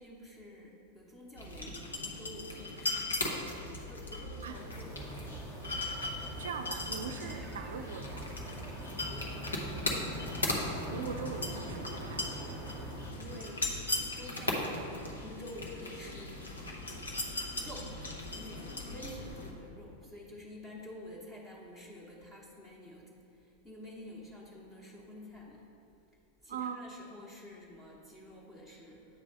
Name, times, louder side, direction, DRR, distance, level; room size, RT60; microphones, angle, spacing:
voice 1, 0.0-3.4 3.8-5.3 9.0-9.6 13.1-13.8 14.1-16.7 17.6-18.0 18.3-25.6 26.4-29.2, left 1 dB, 15° left, -5 dB, 1.0 m, -49 dB
sound 1, 1.4-19.5, left 2 dB, 75° left, 0.9 m, -38 dB
sound 2, 4.5-13.1, right 1 dB, 10° right, 0.9 m, -44 dB
voice 2, 6.4-8.4 10.9-12.3 26.5-26.9, right 6 dB, 60° right, 8 dB, 0.4 m, -41 dB
8.7 x 3.3 x 5.2 m, 2.7 s
figure-of-eight pair, 90°, 0 cm